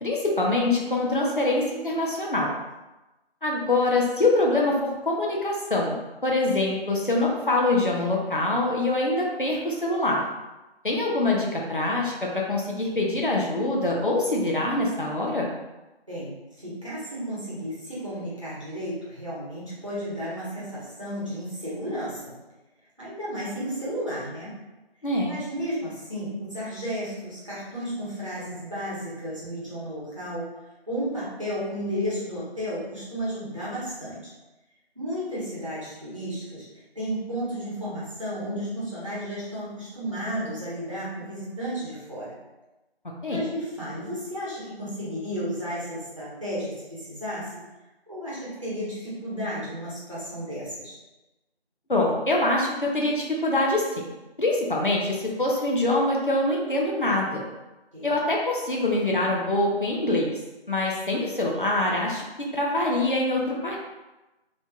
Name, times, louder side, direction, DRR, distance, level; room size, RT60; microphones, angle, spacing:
voice 1, 0.0-2.5 3.4-5.9 6.2-10.2 10.8-15.5 25.0-25.4 43.2-43.4 51.9-54.0 54.4-57.5 58.0-60.3 60.7-62.2 62.5-63.8, left 2 dB, 55° left, -2 dB, 0.7 m, -24 dB
voice 2, 16.1-22.3 23.0-24.5 25.3-30.5 30.9-34.3 34.9-36.7 36.9-42.3 43.3-47.5 48.1-51.0 57.9-58.1, equal, 30° right, -9 dB, 1.1 m, -33 dB
4.3 x 2.9 x 2.3 m, 1.0 s
figure-of-eight pair, 170°, 32 cm